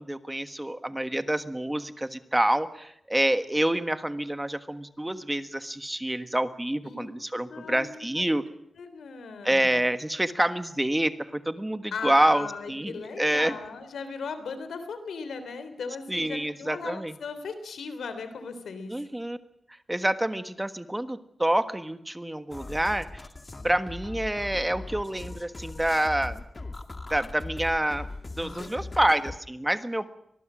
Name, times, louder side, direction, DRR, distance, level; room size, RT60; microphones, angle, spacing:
voice 1, 0.0-8.4 9.4-13.5 16.1-17.1 18.9-19.4 19.9-23.2 23.6-26.4 27.1-28.1 28.4-30.1, right 1 dB, 10° right, 10 dB, 1.4 m, -27 dB
voice 2, 7.5-7.9 8.2-8.3 8.8-9.7 11.9-19.0 28.4-28.7, left 5 dB, 90° left, 10 dB, 3.3 m, -37 dB
sound 1, 22.5-29.4, left 2 dB, 30° left, 2.1 m, -39 dB
25.0 x 20.5 x 6.3 m, 0.73 s
wide cardioid pair, 90°, 0 cm